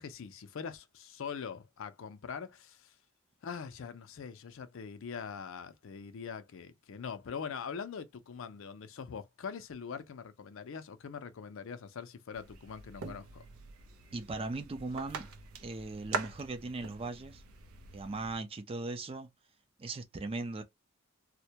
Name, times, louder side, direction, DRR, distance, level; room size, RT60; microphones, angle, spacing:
voice 1, 0.0-2.9 3.4-13.4, left 6 dB, 65° left, 0.4 m, -43 dB
sound 1, 12.3-18.4, right 4 dB, 90° right, 0.5 m, -43 dB
voice 2, 14.1-15.3 15.6-17.4 17.9-19.3 19.8-20.6, right 3 dB, 25° right, 0.4 m, -38 dB
2.1 x 2.1 x 2.7 m
head